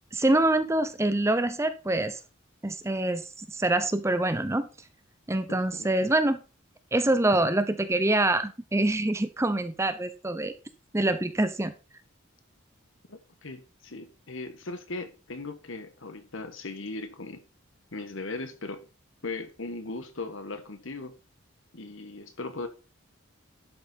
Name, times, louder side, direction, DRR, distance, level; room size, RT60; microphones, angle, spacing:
voice 1, 0.1-2.2 2.6-4.7 5.3-6.4 6.9-10.5 10.9-11.7, right 2 dB, 15° right, 0.6 m, -25 dB
voice 2, 5.5-5.9 13.1-17.4 17.9-18.8 19.2-21.1 21.7-22.7, left 3 dB, 65° left, 1.4 m, -38 dB
11.5 x 6.8 x 4.0 m
head